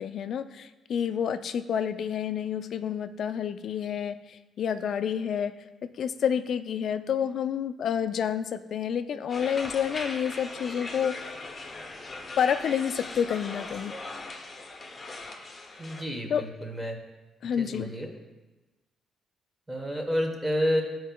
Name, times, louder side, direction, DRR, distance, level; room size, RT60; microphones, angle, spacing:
voice 1, 0.0-5.5 6.0-11.4 12.4-13.9 16.3-16.4 17.4-17.9, left 8 dB, 65° left, 11 dB, 0.3 m, -29 dB
sound 1, 9.3-16.0, left 2 dB, 30° left, 0.7 m, -39 dB
voice 2, 15.8-17.0 17.6-18.1 19.7-20.8, equal, 10° right, 2 dB, 1.0 m, -29 dB
11.0 x 4.6 x 2.2 m, 1.1 s
cardioid pair, 90°, 0 cm